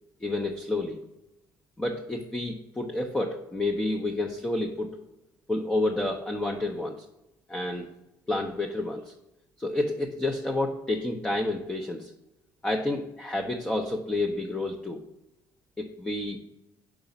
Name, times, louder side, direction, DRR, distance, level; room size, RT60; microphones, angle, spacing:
voice 1, 0.2-1.0 1.8-4.9 5.5-7.0 7.5-7.9 8.3-9.1 9.6-12.1 12.6-15.0 15.8-16.4, left 2 dB, 10° left, 2 dB, 0.6 m, -29 dB
4.9 x 4.7 x 5.3 m, 0.91 s
cardioid pair, 85°, 8 cm